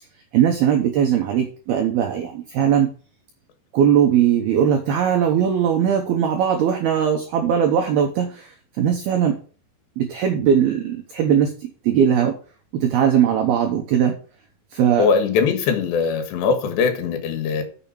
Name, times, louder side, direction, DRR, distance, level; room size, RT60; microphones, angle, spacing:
voice 1, 0.3-2.9 3.7-9.4 10.0-12.3 12.7-14.2 14.7-15.1, right 8 dB, 85° right, 2.2 m, -19 dB
voice 2, 15.0-17.6, left 5 dB, 65° left, 3.5 m, -21 dB
7.0 x 7.0 x 7.2 m
omnidirectional pair, 5.9 m